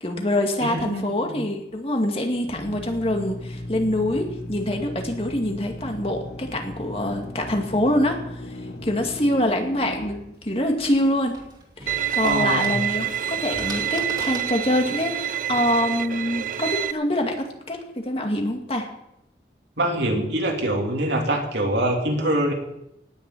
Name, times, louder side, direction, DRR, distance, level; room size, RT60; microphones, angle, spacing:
voice 1, 0.0-11.4 11.8-18.9, left 1 dB, 35° left, 2 dB, 2.2 m, -25 dB
voice 2, 0.6-1.4 12.2-12.8 19.8-22.5, right 1 dB, 80° right, 1 dB, 3.1 m, -24 dB
Drill, 2.4-11.0, left 1 dB, 65° left, 1.6 m, -37 dB
sound 1, 10.3-15.7, right 2 dB, 25° right, 2.7 m, -42 dB
Bowed string instrument, 11.9-16.9, right 11 dB, 50° right, 0.4 m, -27 dB
18.5 x 7.0 x 8.5 m, 0.84 s
head